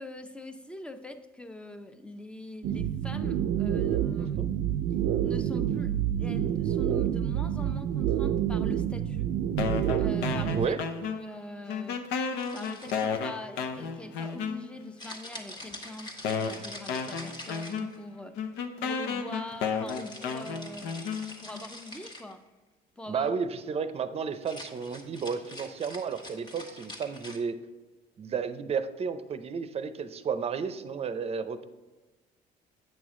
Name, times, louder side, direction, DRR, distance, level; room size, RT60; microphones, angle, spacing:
voice 1, 0.0-4.4 5.2-9.3 10.0-10.8 11.0-12.0 12.5-18.4 18.8-22.4 23.0-23.3, left 1 dB, 5° left, 8 dB, 0.6 m, -43 dB
sound 1, 2.6-10.7, right 10 dB, 85° right, 0.5 m, -28 dB
sound 2, 9.6-11.4 11.7-14.9 15.7-15.8 16.2-21.6, left 6 dB, 85° left, 0.7 m, -33 dB
sound 3, 12.4-13.3 15.0-18.2 19.9-22.3 24.3-27.4, left 1 dB, 25° left, 1.4 m, -45 dB
voice 2, 23.1-27.6 28.2-31.6, right 6 dB, 35° right, 11 dB, 0.6 m, -32 dB
8.7 x 6.1 x 3.7 m, 1.2 s
cardioid pair, 110°, 17 cm